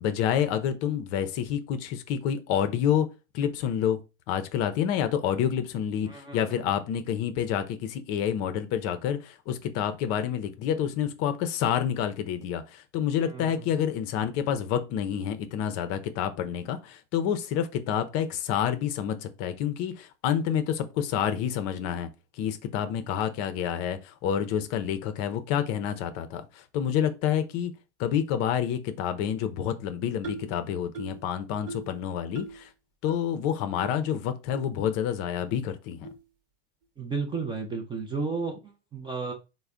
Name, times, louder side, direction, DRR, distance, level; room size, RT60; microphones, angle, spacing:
voice 1, 0.0-3.1 3.3-4.0 4.3-22.1 22.4-27.7 28.0-32.7 33.0-36.1, left 9 dB, 45° left, 0.5 m, -28 dB
voice 2, 6.1-6.4 13.3-13.7 37.0-39.3, right 4 dB, 15° right, 0.3 m, -33 dB
sound 1, 30.2-30.5 30.9-31.2 31.7-31.9 32.3-32.6 33.1-33.2 33.8-33.9 34.5-34.6 35.3-35.4 36.0-36.2, right 3 dB, 60° right, 1.2 m, -39 dB
3.2 x 2.1 x 3.6 m
hypercardioid pair, 115°, 36 cm